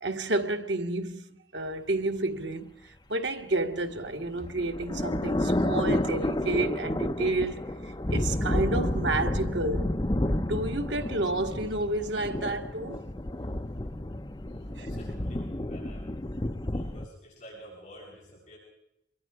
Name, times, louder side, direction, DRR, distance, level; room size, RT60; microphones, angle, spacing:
voice 1, 0.0-2.7 3.1-9.9 10.3-13.0, right 2 dB, 80° right, 1.6 m, -30 dB
sound 1, 4.0-17.1, left 1 dB, 25° left, 0.8 m, -30 dB
voice 2, 14.5-16.2 16.7-18.6, equal, 40° left, 7.6 m, -49 dB
26.0 x 23.0 x 4.9 m
head